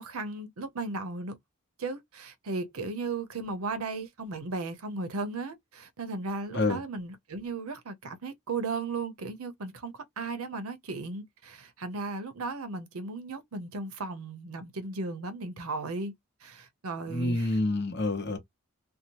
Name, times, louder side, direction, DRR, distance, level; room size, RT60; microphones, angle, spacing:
voice 1, 0.0-1.4 1.8-16.1 16.4-17.6, right 3 dB, 90° right, 0.7 m, -36 dB
voice 2, 17.1-18.4, left 2 dB, 50° left, 0.8 m, -27 dB
2.6 x 2.0 x 2.9 m
head